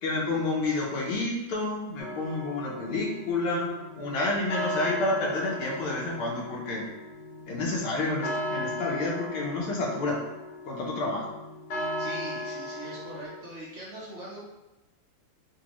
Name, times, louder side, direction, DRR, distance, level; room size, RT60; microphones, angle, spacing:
voice 1, 0.0-6.9 7.5-10.2 10.7-11.3, left 2 dB, 80° left, -2 dB, 1.6 m, -29 dB
sound 1, 2.0-13.3, left 1 dB, 60° left, 1.4 m, -37 dB
voice 2, 12.0-14.5, right 1 dB, 60° right, -6 dB, 0.7 m, -41 dB
4.0 x 2.7 x 2.9 m, 1.0 s
omnidirectional pair, 2.3 m